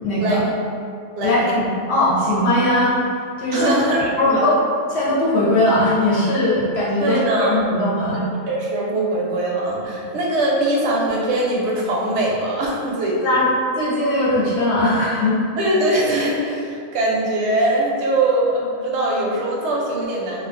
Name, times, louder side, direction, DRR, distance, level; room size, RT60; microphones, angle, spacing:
voice 1, 0.0-0.4 1.2-3.0 3.4-3.7 4.2-4.6 4.9-7.2 7.5-8.2 13.2-13.5 13.8-15.4, left 1 dB, 60° left, -7 dB, 0.8 m, -19 dB
voice 2, 1.2-1.5 3.5-4.4 7.0-7.5 8.0-13.4 15.6-20.5, right 1 dB, 65° right, -3 dB, 0.8 m, -22 dB
2.3 x 2.2 x 2.4 m, 2.3 s
omnidirectional pair, 1.3 m